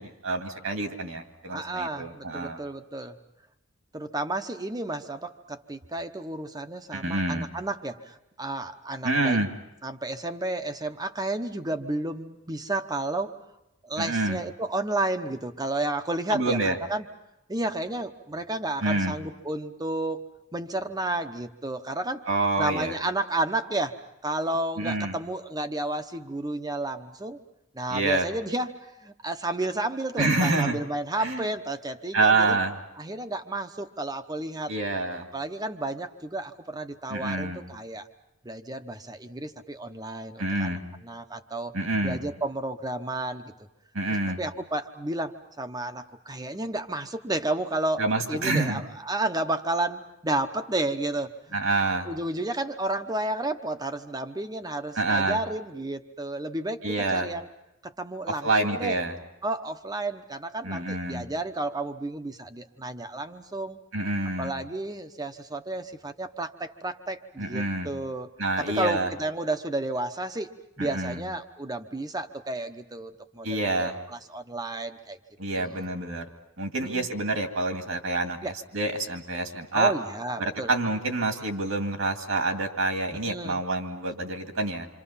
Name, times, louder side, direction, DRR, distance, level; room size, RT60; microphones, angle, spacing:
voice 1, 0.0-2.6 6.9-7.5 9.0-9.5 14.0-14.4 16.3-16.8 18.8-19.2 22.3-22.9 24.8-25.2 27.9-28.3 30.2-30.8 31.2-31.5 32.1-32.7 34.7-35.3 37.1-37.6 40.4-40.8 41.7-42.2 43.9-44.4 48.0-48.8 51.5-52.1 55.0-55.4 56.8-57.3 58.4-59.2 60.6-61.3 63.9-64.5 67.4-67.9 68.4-69.1 70.8-71.2 73.4-73.9 75.4-76.2 76.6-79.9 80.4-84.9, right 2 dB, 70° right, 5 dB, 2.3 m, -27 dB
voice 2, 1.5-3.2 3.9-9.4 9.8-13.3 13.8-17.1 17.5-20.2 20.5-22.3 22.6-27.4 27.7-32.6 33.0-34.7 35.3-38.1 38.4-41.7 42.0-43.7 44.1-51.6 52.0-57.5 57.8-59.0 59.4-63.8 64.4-68.3 68.6-75.2 75.5-75.9 76.8-77.1 78.4-78.5 79.7-80.7 83.3-83.6, right 2 dB, 20° right, 8 dB, 1.0 m, -32 dB
28.0 x 26.0 x 5.7 m, 0.88 s
head